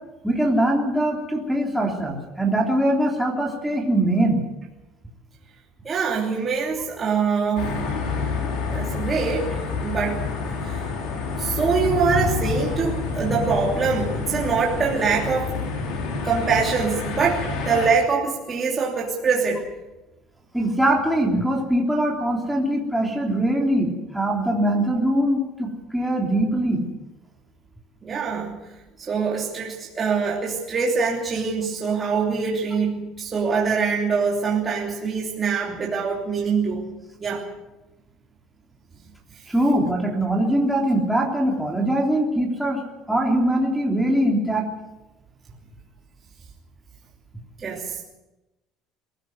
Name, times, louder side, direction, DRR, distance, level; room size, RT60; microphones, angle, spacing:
voice 1, 0.2-4.4 20.5-26.8 39.5-42.8 43.1-44.7, right 1 dB, ahead, -2 dB, 3.4 m, -22 dB
voice 2, 5.8-7.8 8.7-10.2 10.6-10.8 11.4-15.5 16.2-19.6 28.0-28.6 29.0-36.8 37.2-37.5 47.6-48.0, right 5 dB, 25° right, -3 dB, 3.1 m, -24 dB
sound 1, 7.5-17.9, left 4 dB, 75° left, 5.4 m, -28 dB
22.5 x 15.5 x 8.1 m, 1.0 s
cardioid pair, 150°, 0 cm